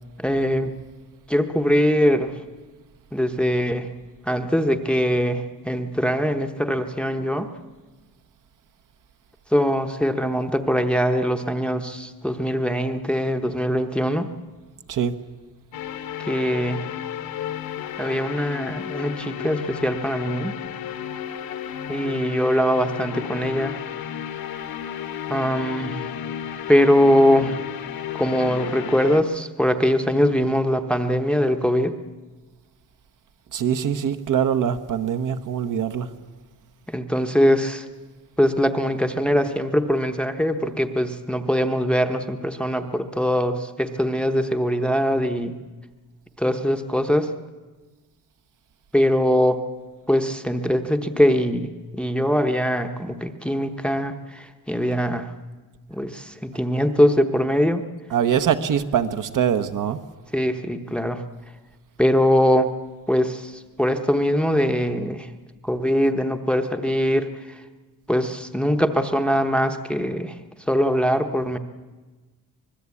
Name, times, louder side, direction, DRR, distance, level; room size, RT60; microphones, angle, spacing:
voice 1, 0.2-0.7 1.3-2.3 3.1-3.9 4.3-7.5 9.5-14.3 16.2-16.9 18.0-20.5 21.9-23.8 25.3-26.1 26.7-27.6 28.2-31.9 36.9-37.9 38.4-45.6 46.4-47.3 48.9-49.6 50.1-55.3 55.9-57.8 60.3-61.2 62.0-62.7 63.1-65.3 65.6-67.6 68.1-70.4 70.7-71.6, equal, 5° left, 0.9 m, -22 dB
sound 1, 15.7-29.2, left 9 dB, 75° left, 1.5 m, -33 dB
voice 2, 33.5-36.1 58.1-60.0, right 8 dB, 60° right, 1.2 m, -23 dB
25.0 x 20.0 x 8.4 m
wide cardioid pair, 175°, 36 cm